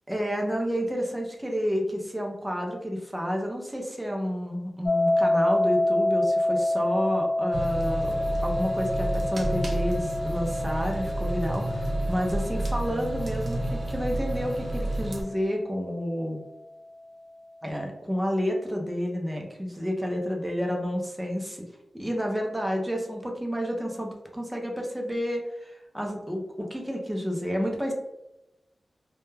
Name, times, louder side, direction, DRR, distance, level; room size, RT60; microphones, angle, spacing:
voice 1, 0.1-16.4 17.6-21.7 21.9-27.9, equal, 10° right, 1 dB, 0.5 m, -30 dB
sound 1, 4.9-15.8, left 1 dB, 30° left, 0.9 m, -28 dB
sound 2, 7.5-15.2, right 1 dB, 60° right, 0.7 m, -30 dB
2.2 x 2.1 x 3.1 m, 0.92 s
wide cardioid pair, 80°, 0 cm